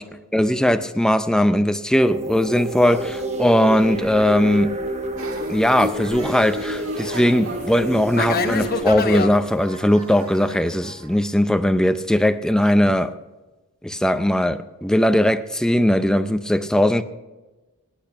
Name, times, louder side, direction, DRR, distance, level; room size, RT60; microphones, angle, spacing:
voice 1, 0.3-4.7 5.5-13.1 13.8-17.0, left 1 dB, 5° left, 10 dB, 0.5 m, -19 dB
sound 1, 2.0-8.8, right 1 dB, 30° right, 1.0 m, -29 dB
Fixed-wing aircraft airplane, 2.8-9.4, left 4 dB, 45° left, 0.9 m, -30 dB
sound 2, 5.2-12.0, right 3 dB, 65° right, 1.7 m, -41 dB
19.0 x 8.7 x 5.8 m, 1.1 s
head